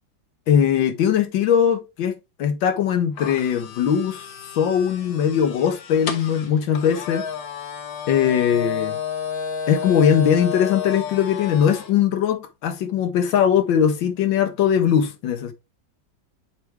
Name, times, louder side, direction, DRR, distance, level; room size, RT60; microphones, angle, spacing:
voice 1, 0.5-2.1 2.4-4.3 4.6-7.2 8.1-9.0 9.7-15.5, left 8 dB, 80° left, 1.6 m, -20 dB
sound 1, 3.2-11.9, left 7 dB, 60° left, 1.4 m, -31 dB
6.7 x 4.6 x 3.4 m
omnidirectional pair, 2.1 m